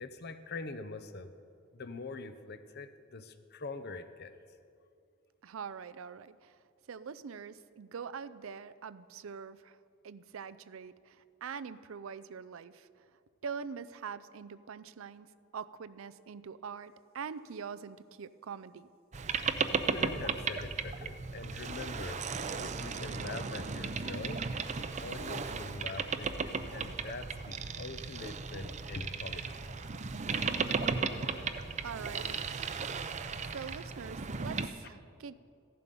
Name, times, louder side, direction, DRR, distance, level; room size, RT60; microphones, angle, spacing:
voice 1, 0.0-1.3 1.7-4.3 19.9-22.3 22.6-24.5 24.7-29.6, left 3 dB, 55° left, 11 dB, 0.7 m, -43 dB
voice 2, 5.4-6.5 6.9-9.8 10.0-12.9 13.4-15.3 15.5-18.9 31.8-32.4 33.5-35.3, right 6 dB, 90° right, 14 dB, 0.5 m, -43 dB
Boat Water vehicle, 19.1-34.7, right 5 dB, 35° right, 0.6 m, -35 dB
14.5 x 11.0 x 5.3 m, 2.3 s
head